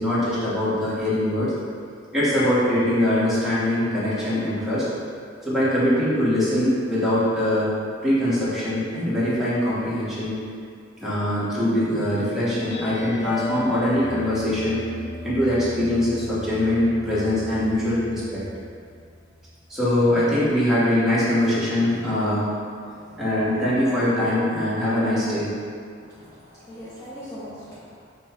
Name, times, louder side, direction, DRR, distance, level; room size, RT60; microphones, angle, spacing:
voice 1, 0.0-1.5 2.1-4.9 5.4-7.7 8.0-10.4 11.0-14.8 15.2-18.4 19.7-22.4 23.2-25.5, left 1 dB, ahead, -11 dB, 1.2 m, -22 dB
sound 1, 12.5-19.6, left 2 dB, 60° left, 0.8 m, -37 dB
voice 2, 26.0-28.0, equal, 15° left, -11 dB, 0.6 m, -41 dB
5.5 x 2.2 x 4.3 m, 2.3 s
head